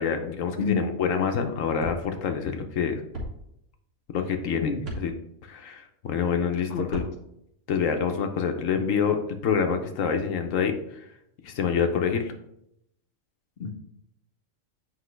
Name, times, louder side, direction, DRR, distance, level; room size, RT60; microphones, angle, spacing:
voice 1, 0.0-3.0 4.1-4.7 5.0-5.1 5.5-7.0 7.7-11.0 11.4-12.2, left 6 dB, 80° left, 5 dB, 1.2 m, -26 dB
voice 2, 0.6-1.0 4.6-4.9 6.7-7.0 8.7-8.9 13.6-13.7, left 4 dB, 50° left, 2 dB, 0.9 m, -29 dB
sound 1, 1.8-2.0 3.1-3.3 4.8-5.0 6.8-7.1, right 1 dB, 70° right, 2.2 m, -34 dB
8.1 x 5.2 x 3.2 m, 0.77 s
omnidirectional pair, 1.4 m